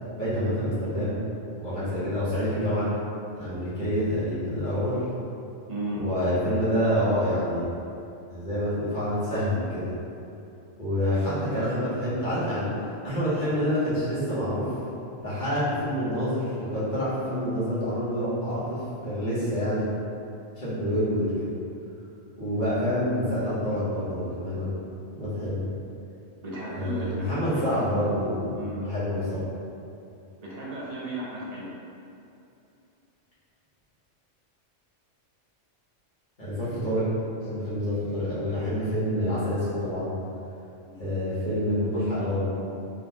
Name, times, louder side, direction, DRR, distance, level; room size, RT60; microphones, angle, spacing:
voice 1, 0.2-1.2 1.6-2.9 3.3-5.0 6.0-7.7 8.3-9.9 10.8-12.7 13.0-14.7 15.2-19.9 20.5-21.5 22.4-24.7 25.1-25.7 26.7-28.6 28.9-29.4 36.4-37.1 37.4-40.1 41.0-42.6, equal, 40° left, -12 dB, 1.5 m, -27 dB
voice 2, 5.7-6.0 26.4-27.6 28.5-28.8 30.4-31.7 40.8-41.1, right 1 dB, 35° right, -7 dB, 0.8 m, -35 dB
3.8 x 3.8 x 2.3 m, 2.7 s
omnidirectional pair, 1.2 m